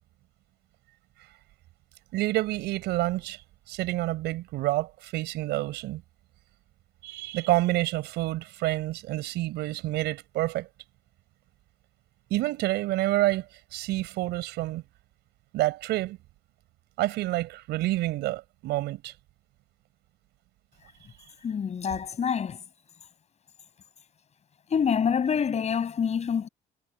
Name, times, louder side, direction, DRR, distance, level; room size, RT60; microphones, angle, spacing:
voice 1, 2.1-3.4 3.7-6.0 7.0-10.7 12.3-13.5 13.7-14.8 15.5-16.2 17.0-19.1, right 17 dB, 85° right, 5.8 m, -28 dB
voice 2, 21.4-22.6 24.7-26.5, left 7 dB, 40° left, 7.7 m, -26 dB
cardioid pair, 110°, 17 cm